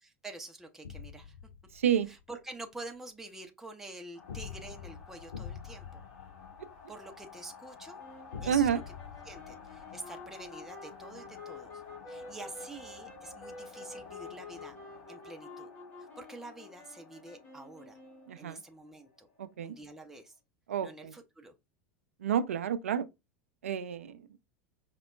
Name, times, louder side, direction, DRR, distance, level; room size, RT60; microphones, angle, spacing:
voice 1, 0.0-1.4 2.1-6.0 6.9-8.0 8.4-8.9 9.2-14.8 15.1-15.7 16.0-18.0 18.4-19.3 19.6-20.4 20.8-21.5, right 2 dB, 5° right, 0.5 m, -47 dB
sound 1, 0.8-2.2 4.3-7.2 8.3-10.5, left 7 dB, 75° left, 0.4 m, -46 dB
voice 2, 1.7-2.1 6.6-6.7 8.5-8.8 18.3-18.6 19.4-19.7 20.7-21.1 22.2-23.1 23.6-24.2, right 9 dB, 70° right, 0.4 m, -29 dB
sound 2, 4.1-20.0, left 6 dB, 55° left, 1.5 m, -52 dB
sound 3, 8.0-18.5, left 3 dB, 25° left, 1.3 m, -50 dB
5.1 x 2.1 x 2.3 m
figure-of-eight pair, 80°, 8 cm